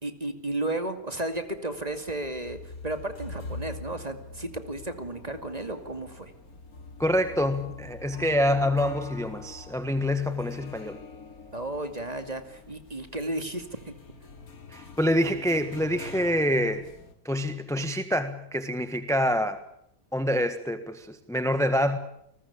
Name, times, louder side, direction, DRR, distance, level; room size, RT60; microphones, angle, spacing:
voice 1, 0.0-6.3 11.5-13.9, right 2 dB, 25° right, 8 dB, 2.5 m, -33 dB
sound 1, 1.3-17.1, left 4 dB, 80° left, 3.0 m, -44 dB
voice 2, 7.0-11.0 14.7-16.9 17.2-19.6 20.1-22.0, equal, ahead, 10 dB, 1.3 m, -26 dB
29.0 x 20.0 x 8.6 m, 0.73 s
omnidirectional pair, 1.5 m